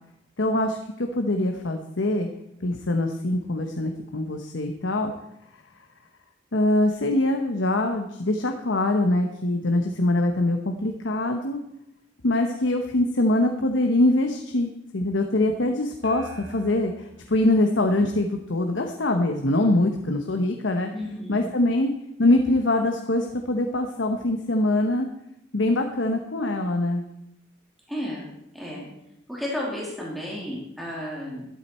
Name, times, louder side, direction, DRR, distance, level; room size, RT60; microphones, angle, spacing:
voice 1, 0.4-2.3 2.6-5.1 5.5-5.6 6.5-11.6 12.2-20.9 21.3-21.9 22.2-25.1 25.5-27.0, left 1 dB, 80° left, 4 dB, 1.0 m, -23 dB
sound 1, 16.0-18.7, equal, 75° right, 2.1 m, -48 dB
voice 2, 20.9-21.4 27.9-28.3 28.5-28.9 29.3-31.5, left 1 dB, ahead, -5 dB, 2.6 m, -32 dB
12.5 x 12.5 x 4.3 m, 0.86 s
head